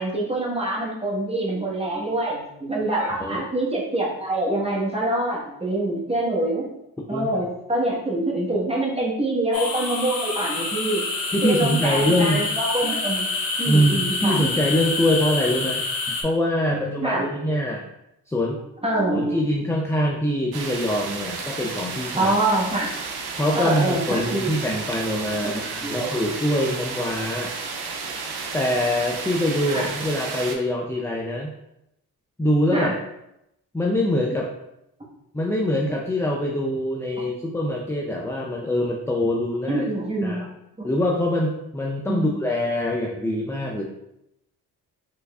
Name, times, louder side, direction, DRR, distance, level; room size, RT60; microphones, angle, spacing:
voice 1, 0.0-6.7 7.1-11.0 11.4-13.3 13.6-14.6 15.5-15.7 16.6-17.3 18.8-19.4 22.1-22.9 23.5-24.5 25.4-26.1 29.7-29.9 32.7-33.0 39.7-40.4 40.8-40.9 42.1-42.3, right 1 dB, 15° right, -4 dB, 1.2 m, -25 dB
sound 1, 9.5-16.2, left 3 dB, 55° left, 0.9 m, -27 dB
voice 2, 11.3-12.5 13.7-15.8 16.2-17.8 18.3-18.6 19.1-22.3 23.4-27.5 28.5-31.5 32.4-32.9 33.7-34.5 35.3-39.8 40.2-40.4 40.8-43.8, left 1 dB, 5° left, -1 dB, 0.4 m, -24 dB
sound 2, 20.5-30.5, right 4 dB, 65° right, 0.7 m, -32 dB
3.3 x 3.2 x 2.3 m, 0.84 s
supercardioid pair, 50°, 41 cm